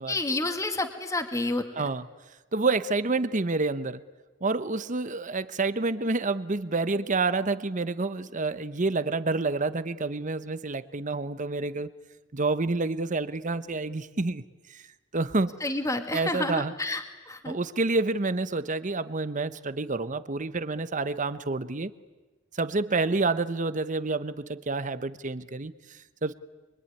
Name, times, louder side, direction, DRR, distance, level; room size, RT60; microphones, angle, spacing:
voice 1, 0.1-1.7 15.6-17.6, left 2 dB, 15° left, 5 dB, 1.8 m, -29 dB
voice 2, 2.5-4.0 4.4-11.9 12.3-14.4 14.7-14.9 15.1-15.5 16.1-16.7 17.4-21.9 22.5-26.3, right 3 dB, 40° right, 13 dB, 1.0 m, -28 dB
24.5 x 24.0 x 9.8 m, 1.2 s
head